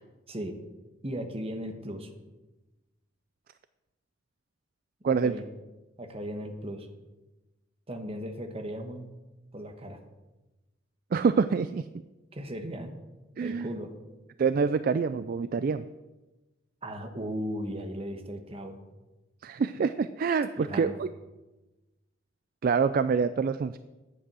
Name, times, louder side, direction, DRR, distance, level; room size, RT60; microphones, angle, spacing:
voice 1, 1.0-2.1 5.1-5.5 6.0-6.9 7.9-9.1 9.5-10.0 12.3-12.9 13.4-13.9 16.8-18.8 20.6-20.9, equal, 30° right, 5 dB, 1.2 m, -36 dB
voice 2, 11.1-12.0 13.4-13.7 14.4-15.9 19.4-21.1 22.6-23.8, right 5 dB, 50° right, 12 dB, 0.3 m, -26 dB
10.0 x 8.5 x 6.2 m, 1.1 s
head